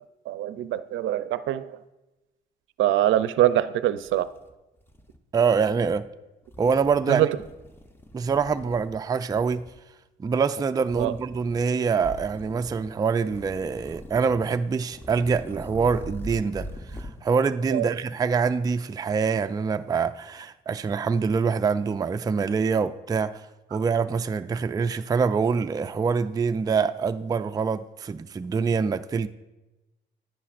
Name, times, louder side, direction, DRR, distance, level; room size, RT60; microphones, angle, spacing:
voice 1, 0.3-1.8 2.8-4.3 7.1-7.3 11.0-11.1 17.7-17.9, right 13 dB, 80° right, 0.5 m, -23 dB
sound 1, 4.0-5.2 5.5-6.0 6.5-7.0 7.4-9.0 9.3-9.8 10.9-11.6 12.0-12.9 13.3-14.5 14.9-17.2, equal, 10° left, 0.7 m, -42 dB
voice 2, 5.3-6.1 6.6-7.3 8.1-9.7 10.2-23.4 23.7-29.3, right 5 dB, 20° right, 0.3 m, -25 dB
10.5 x 9.9 x 2.5 m
cardioid pair, 90°, 20 cm